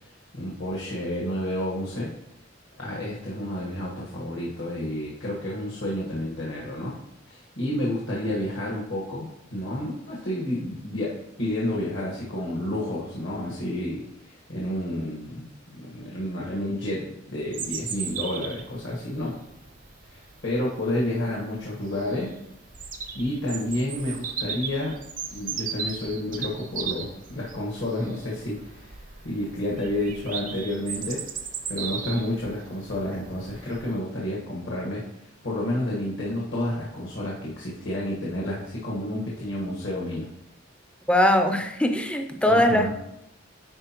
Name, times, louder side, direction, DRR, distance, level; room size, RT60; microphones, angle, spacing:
voice 1, 0.3-2.1 2.8-7.0 7.3-19.3 20.1-22.3 23.1-25.0 25.3-29.0 29.2-31.2 31.7-35.0 35.4-40.3 42.5-42.9, left 1 dB, 65° left, -5 dB, 1.4 m, -30 dB
Bird vocalization bird call bird song, 17.5-34.0, right 6 dB, 45° right, 0.6 m, -37 dB
voice 2, 41.1-42.9, left 1 dB, 5° left, 6 dB, 0.5 m, -21 dB
9.8 x 4.2 x 2.9 m, 0.83 s
head